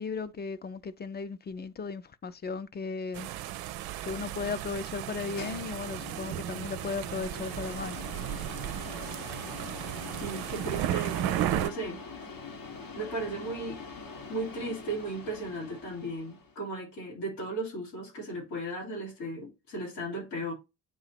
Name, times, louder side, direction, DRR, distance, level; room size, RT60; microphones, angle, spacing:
voice 1, 0.0-3.3 4.1-8.0, left 5 dB, 20° left, 0.5 m, -36 dB
sound 1, 3.1-11.7, right 12 dB, 50° right, 0.6 m, -34 dB
sound 2, 5.0-16.6, left 4 dB, 45° left, 1.5 m, -44 dB
voice 2, 10.1-12.3 12.9-13.8 14.3-20.5, right 2 dB, 70° left, 2.9 m, -36 dB
8.2 x 2.8 x 4.3 m
figure-of-eight pair, 50°, 48 cm